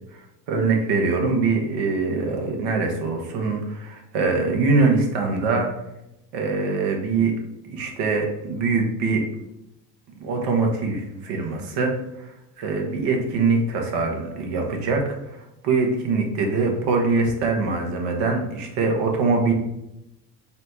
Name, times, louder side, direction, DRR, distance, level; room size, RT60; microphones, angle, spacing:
voice 1, 0.5-5.7 6.3-7.3 7.7-9.2 10.2-11.9 12.2-15.0 15.3-19.5, right 4 dB, 60° right, 2 dB, 1.1 m, -23 dB
4.3 x 2.2 x 4.1 m, 0.88 s
hypercardioid pair, 75°, 46 cm